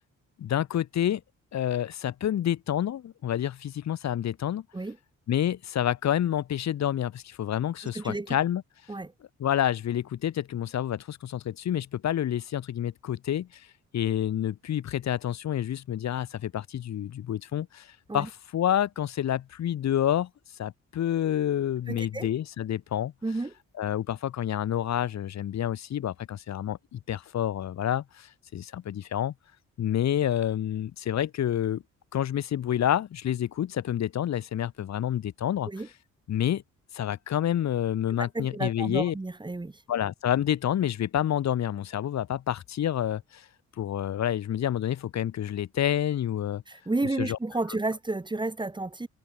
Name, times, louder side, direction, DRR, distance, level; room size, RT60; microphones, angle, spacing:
voice 1, 0.4-1.2 1.5-4.6 5.3-8.6 9.4-13.6 13.9-17.9 18.1-20.3 20.6-23.1 23.8-29.3 29.8-31.8 32.1-35.7 36.3-36.6 36.9-39.1 39.9-43.5 43.8-46.6 47.2-47.4, left 11 dB, 60° left, 1.9 m, -28 dB
voice 2, 7.8-8.4 8.9-9.1 18.1-18.3 21.9-22.3 23.2-23.5 35.7-35.9 38.2-39.8 46.7-49.1, right 2 dB, 15° right, 1.8 m, -31 dB
cardioid pair, 90°, 30 cm